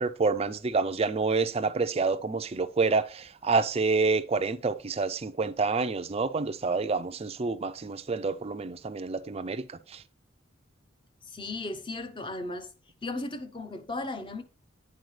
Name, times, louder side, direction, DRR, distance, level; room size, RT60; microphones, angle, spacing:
voice 1, 0.0-9.6 9.9-10.0, right 4 dB, 30° right, 0.4 m, -28 dB
voice 2, 11.2-12.7 13.0-14.4, left 2 dB, 25° left, 0.7 m, -36 dB
9.3 x 4.6 x 3.2 m
head